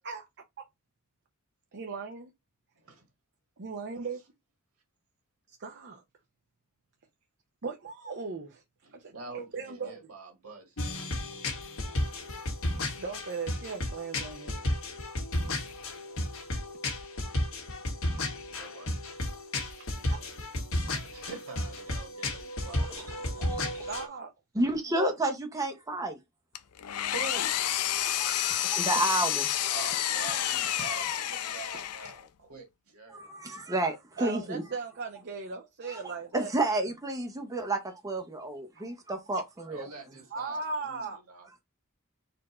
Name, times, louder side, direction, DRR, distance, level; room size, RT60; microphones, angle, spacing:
voice 1, 1.7-2.3 3.6-4.2 5.5-6.0 7.6-8.6 8.9-10.0 12.9-14.6 20.1-20.2 23.9-24.3 28.6-28.8 34.2-36.8 38.7-38.9 39.3-39.4 40.3-41.2, right 4 dB, 50° right, 0.7 m, -38 dB
voice 2, 8.8-10.7 18.5-18.9 21.1-23.0 23.3-23.4 27.1-27.5 29.7-33.6 39.7-41.5, right 4 dB, 70° right, 1.7 m, -45 dB
sound 1, 10.8-24.1, left 1 dB, 70° left, 1.5 m, -33 dB
voice 3, 22.8-23.1 23.4-23.7 24.6-26.2 27.9-29.5 30.4-30.5 33.1-34.6 35.9-39.9, right 2 dB, 15° right, 0.8 m, -31 dB
Engine, 26.5-32.3, left 11 dB, 90° left, 0.5 m, -30 dB
4.3 x 2.6 x 4.2 m
head